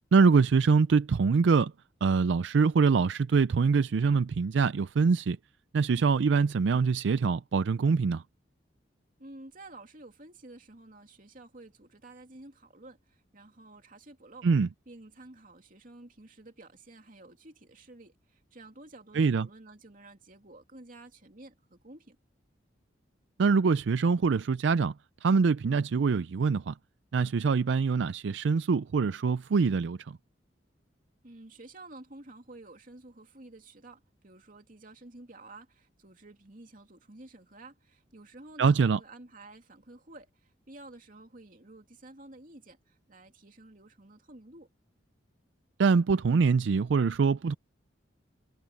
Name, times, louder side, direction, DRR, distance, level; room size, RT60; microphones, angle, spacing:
voice 1, 0.1-1.7 2.0-5.4 5.7-8.2 14.4-14.7 19.1-19.5 23.4-24.9 25.2-26.7 27.1-30.2 38.6-39.0 45.8-47.5, right 5 dB, 75° right, 0.4 m, -24 dB
voice 2, 9.2-14.5 14.9-22.2 31.2-44.7, right 2 dB, 50° right, 2.8 m, -51 dB
head